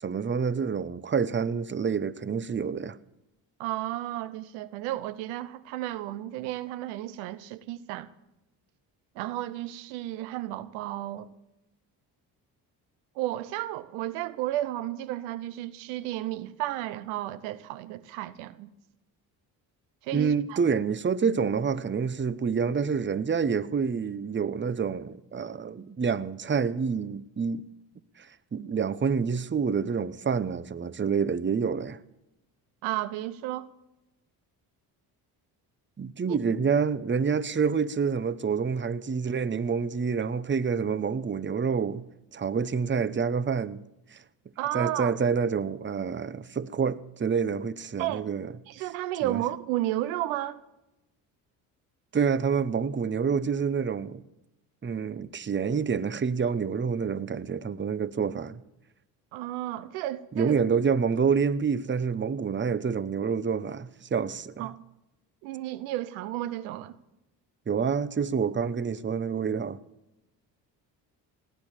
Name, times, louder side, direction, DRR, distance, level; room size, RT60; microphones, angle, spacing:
voice 1, 0.0-3.0 20.1-27.6 28.2-32.0 36.0-42.0 42.3-43.8 44.1-44.2 44.7-48.5 49.2-49.4 52.1-54.2 54.8-58.6 60.3-64.7 67.7-69.8, right 6 dB, 25° right, 0.9 m, -27 dB
voice 2, 3.6-8.1 9.2-11.3 13.2-18.7 20.0-20.6 32.8-33.7 36.3-36.4 44.6-45.2 48.0-48.3 48.7-50.6 59.3-60.6 64.6-64.8 65.4-67.0, right 15 dB, 85° right, 0.8 m, -33 dB
18.0 x 10.5 x 7.3 m
hypercardioid pair, 55°, 46 cm